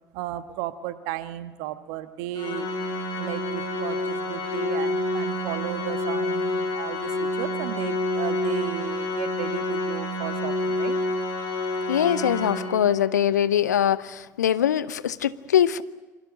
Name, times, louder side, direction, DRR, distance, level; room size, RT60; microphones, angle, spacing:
voice 1, 0.1-2.7 3.1-11.0, right 13 dB, 60° right, 11 dB, 1.6 m, -34 dB
Organ, 2.3-13.2, left 2 dB, 50° left, 5.5 m, -28 dB
voice 2, 11.9-15.8, left 10 dB, 75° left, 16 dB, 0.8 m, -22 dB
27.5 x 26.0 x 6.5 m, 1.2 s
figure-of-eight pair, 60°, 9 cm